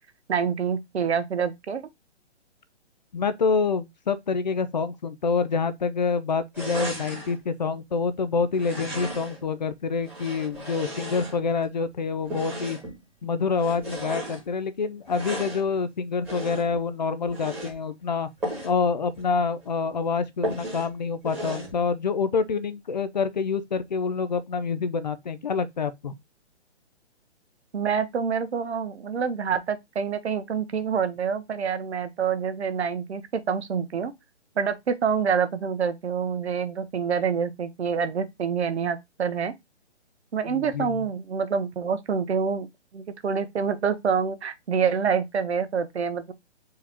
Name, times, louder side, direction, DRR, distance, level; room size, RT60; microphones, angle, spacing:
voice 1, 0.3-1.8 27.7-34.1 34.6-39.5 40.3-42.7 42.9-46.3, right 6 dB, 70° right, 0.9 m, -27 dB
voice 2, 3.1-12.8 13.2-18.3 18.6-26.1 40.5-41.0, left 5 dB, 40° left, 0.5 m, -27 dB
sound 1, 6.5-7.4 8.5-9.4 10.0-11.7 12.2-13.0 13.5-14.4 15.0-15.7 16.2-16.8 17.2-17.7 18.4-18.8 19.1-19.2 19.6-19.7 20.4-20.9 21.2-21.7, right 1 dB, 5° right, 1.4 m, -35 dB
4.7 x 2.9 x 3.5 m
hypercardioid pair, 165°, 34 cm